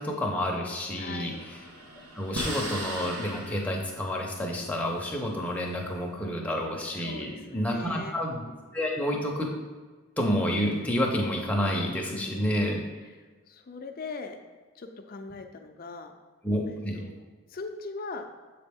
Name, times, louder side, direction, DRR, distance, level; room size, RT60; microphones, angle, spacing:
voice 1, 0.0-1.3 2.1-8.4 8.7-9.5 10.2-12.8 16.4-17.0, equal, 5° left, -1 dB, 0.6 m, -29 dB
voice 2, 1.0-1.4 6.9-8.2 12.1-12.8 13.2-14.4 14.7-16.1 16.7-17.2 17.5-18.2, left 3 dB, 40° left, 6 dB, 0.4 m, -41 dB
sound 1, 1.3-6.0, right 1 dB, 90° right, 1.1 m, -39 dB
7.3 x 4.1 x 3.5 m, 1.4 s
head